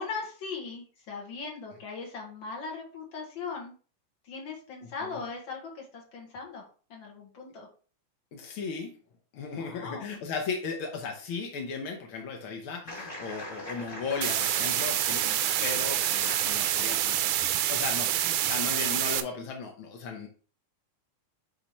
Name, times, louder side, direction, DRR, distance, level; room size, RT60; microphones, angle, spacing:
voice 1, 0.0-3.7 4.2-7.7 9.5-10.1 15.2-15.4, left 4 dB, 45° left, 0 dB, 1.9 m, -39 dB
voice 2, 4.8-5.2 8.3-8.9 9.3-15.3 15.6-17.4 17.7-20.3, left 5 dB, 70° left, 2 dB, 1.2 m, -36 dB
sound 1, 12.9-17.6, left 1 dB, 25° left, 2.8 m, -42 dB
sound 2, 14.2-19.2, right 12 dB, 80° right, 1.9 m, -27 dB
8.5 x 3.8 x 3.0 m, 0.39 s
omnidirectional pair, 3.5 m